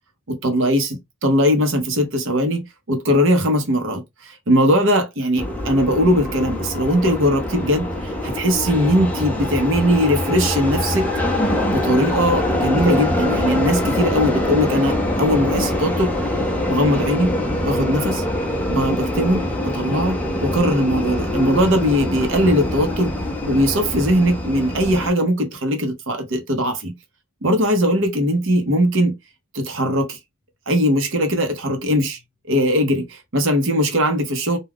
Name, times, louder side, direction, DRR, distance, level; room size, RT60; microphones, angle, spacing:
voice 1, 0.3-11.1 11.7-16.1 16.7-17.3 17.6-18.2 18.7-23.1 23.4-26.9 27.4-29.1 29.5-30.2 30.7-32.2 32.5-34.6, equal, 55° right, 0.8 m, -20 dB
sound 1, 5.4-25.1, left 1 dB, 5° left, 0.5 m, -24 dB
2.3 x 2.2 x 3.4 m
head